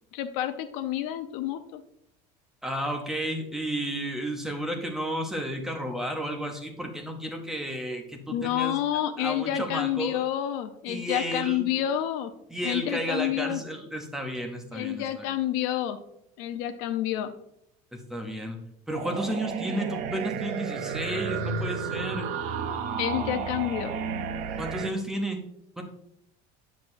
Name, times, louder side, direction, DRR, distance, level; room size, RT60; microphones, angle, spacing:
voice 1, 0.1-1.8 8.3-12.3 12.6-13.6 14.7-16.0 16.4-17.3 23.0-23.9, left 12 dB, 75° left, 9 dB, 0.5 m, -29 dB
voice 2, 2.6-8.8 9.2-10.2 10.9-11.6 12.5-15.3 17.9-18.6 18.9-22.3 24.6-25.4 25.8-25.9, right 1 dB, 5° right, 3 dB, 0.6 m, -32 dB
sound 1, 18.9-24.9, right 6 dB, 50° right, 0.5 m, -32 dB
7.6 x 6.0 x 2.5 m, 0.77 s
cardioid pair, 180°, 16 cm